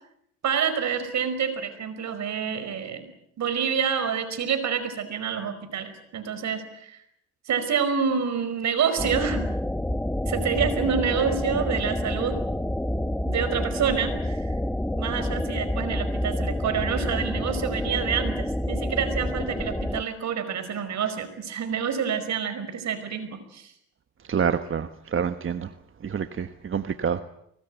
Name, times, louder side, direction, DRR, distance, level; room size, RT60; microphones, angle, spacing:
voice 1, 0.4-3.1 3.4-7.0 7.5-9.5 10.3-12.4 13.2-14.5 15.0-23.7, right 7 dB, 65° right, 10 dB, 5.2 m, -27 dB
sound 1, 9.0-20.0, left 1 dB, 5° left, 1.0 m, -28 dB
voice 2, 24.3-25.7 26.0-27.2, right 7 dB, 45° right, 10 dB, 1.3 m, -27 dB
24.0 x 20.0 x 9.2 m, 0.75 s
cardioid pair, 90°, 30 cm